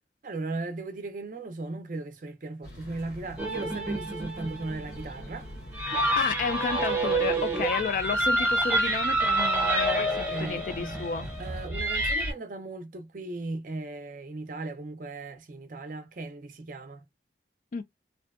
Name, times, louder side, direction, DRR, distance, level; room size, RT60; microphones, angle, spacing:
voice 1, 0.2-5.5 10.0-10.9 11.4-17.0, right 2 dB, 45° right, 0.5 m, -37 dB
sound 1, 2.6-11.7, left 1 dB, 65° left, 0.9 m, -44 dB
sound 2, 3.4-12.3, right 1 dB, 10° right, 0.7 m, -28 dB
voice 2, 6.1-11.3 17.7-17.8, left 5 dB, 45° left, 0.3 m, -31 dB
2.6 x 2.1 x 2.3 m
head